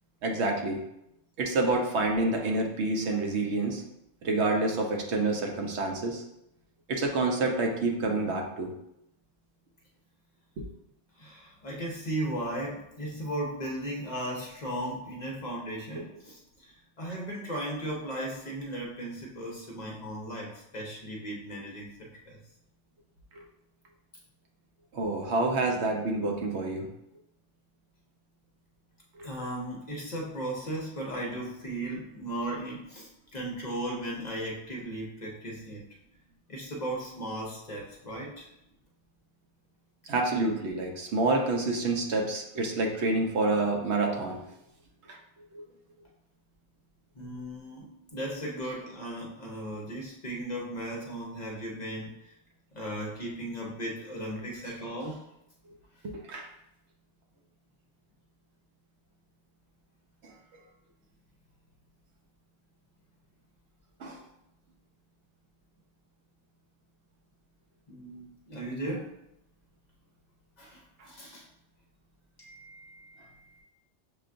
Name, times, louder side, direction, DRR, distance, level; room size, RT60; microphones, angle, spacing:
voice 1, 0.2-0.8 1.4-3.8 4.2-6.2 6.9-8.7 10.6-10.7 23.3-23.4 24.9-26.9 29.2-29.3 40.1-44.4 45.1-45.2 45.5-45.6 56.0-56.5 60.2-60.3 64.0-64.2 71.0-71.1, right 2 dB, 70° right, 1 dB, 0.9 m, -28 dB
voice 2, 11.2-22.4 29.2-35.9 36.5-38.5 47.1-52.3 52.7-55.2 67.9-69.1 70.6-71.5 72.4-73.6, right 1 dB, 45° left, -2 dB, 0.7 m, -36 dB
6.7 x 2.4 x 2.5 m, 0.82 s
omnidirectional pair, 1.2 m